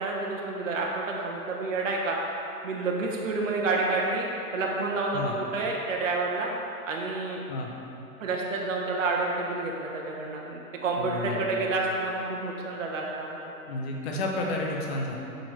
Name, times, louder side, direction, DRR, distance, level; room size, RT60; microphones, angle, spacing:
voice 1, 0.0-2.2 2.6-4.3 4.5-6.5 6.9-7.4 8.2-13.4, right 3 dB, 55° right, -1 dB, 1.1 m, -29 dB
voice 2, 11.0-11.6 13.7-15.2, left 2 dB, 45° left, -1 dB, 1.0 m, -31 dB
7.1 x 5.2 x 4.4 m, 2.9 s
figure-of-eight pair, 120°, 46 cm